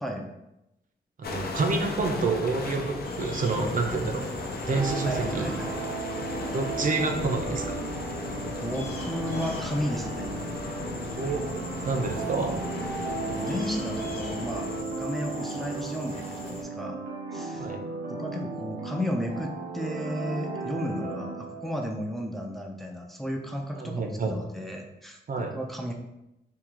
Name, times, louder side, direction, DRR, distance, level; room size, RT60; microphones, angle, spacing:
sound 1, 1.2-14.8, left 3 dB, 65° left, 0.5 m, -36 dB
voice 1, 1.2-4.3 4.7-5.5 6.5-7.8 11.2-11.4 11.8-12.6 17.6-17.8 23.7-24.3 25.3-25.6, right 3 dB, 50° right, 3 dB, 0.5 m, -28 dB
sound 2, 3.0-16.6, left 1 dB, 40° left, 1.0 m, -42 dB
sound 3, 4.7-21.9, right 3 dB, 85° right, 0.8 m, -35 dB
voice 2, 5.0-5.7 8.6-10.3 13.3-17.0 17.3-17.7 18.1-25.9, equal, ahead, 2 dB, 0.4 m, -33 dB
3.6 x 2.3 x 4.5 m, 0.88 s
wide cardioid pair, 170°, 17 cm